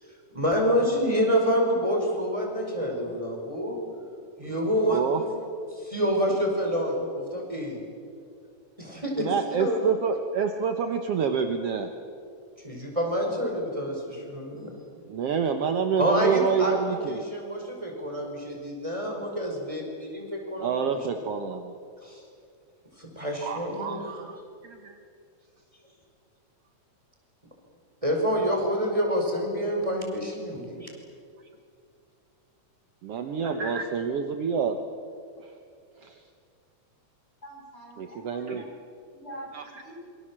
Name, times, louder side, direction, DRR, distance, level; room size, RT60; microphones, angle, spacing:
voice 1, 0.0-3.8 4.4-5.3 5.7-7.8 8.8-9.3 9.6-9.9 12.6-14.7 16.0-21.0 22.0-22.2 23.0-24.0 28.0-30.9, equal, 10° right, 1 dB, 5.1 m, -27 dB
voice 2, 4.9-5.2 9.2-11.9 15.1-17.3 20.6-21.7 23.4-25.0 33.0-34.8 35.4-35.5 36.0-36.2 38.0-38.6 39.5-39.6, right 6 dB, 60° right, 6 dB, 2.0 m, -28 dB
voice 3, 37.4-38.6 39.1-39.9, right 1 dB, 20° left, -3 dB, 7.8 m, -44 dB
27.5 x 25.5 x 7.6 m, 2.3 s
omnidirectional pair, 3.3 m